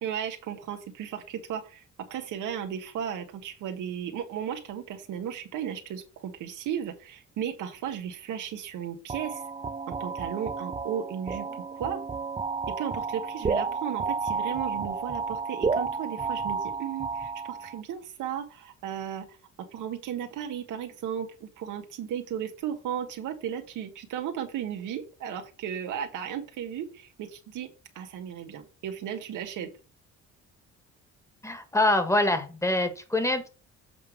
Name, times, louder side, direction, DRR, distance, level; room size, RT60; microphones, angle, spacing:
voice 1, 0.0-1.8 2.1-9.4 9.9-11.5 11.7-12.0 12.7-19.3 19.6-27.7 27.9-29.7, right 9 dB, 85° right, 5 dB, 1.6 m, -35 dB
sound 1, 9.1-17.8, right 4 dB, 20° right, 0.5 m, -32 dB
voice 2, 31.4-33.5, left 2 dB, 10° left, 9 dB, 1.7 m, -25 dB
7.8 x 3.5 x 6.1 m, 0.34 s
cardioid pair, 90°, 30 cm